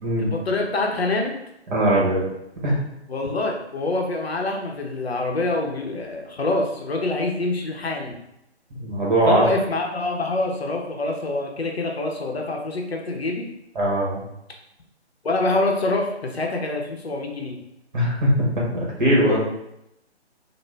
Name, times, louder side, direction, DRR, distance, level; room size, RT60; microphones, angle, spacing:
voice 1, 0.2-1.4 3.1-8.2 9.2-13.5 15.2-17.6 19.2-19.4, left 2 dB, 65° left, 1 dB, 0.7 m, -26 dB
voice 2, 1.7-2.2 2.6-2.8 8.8-9.4 13.7-14.2 17.9-19.4, right 1 dB, 45° right, -4 dB, 1.4 m, -20 dB
3.3 x 2.1 x 3.3 m, 0.84 s
figure-of-eight pair, 140°, 34 cm